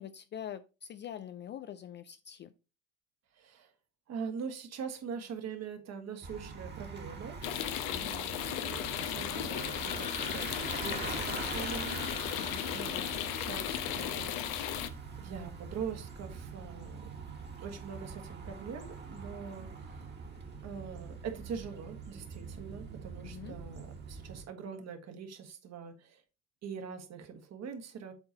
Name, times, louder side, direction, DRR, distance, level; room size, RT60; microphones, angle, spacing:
voice 1, 0.0-2.5 7.9-8.1 12.4-12.7 23.2-23.6, left 10 dB, 30° left, 0.4 m, -44 dB
voice 2, 3.4-3.7 4.1-7.4 8.0-12.3 12.7-14.3 15.2-17.1 17.6-19.7 20.6-26.2 26.6-28.1, right 6 dB, 40° right, 1.6 m, -43 dB
Bicycle, 6.2-24.4, right 5 dB, 25° right, 1.7 m, -43 dB
sound 1, 7.4-14.9, left 12 dB, 60° left, 0.9 m, -35 dB
8.0 x 3.9 x 4.1 m
hypercardioid pair, 80°, 39 cm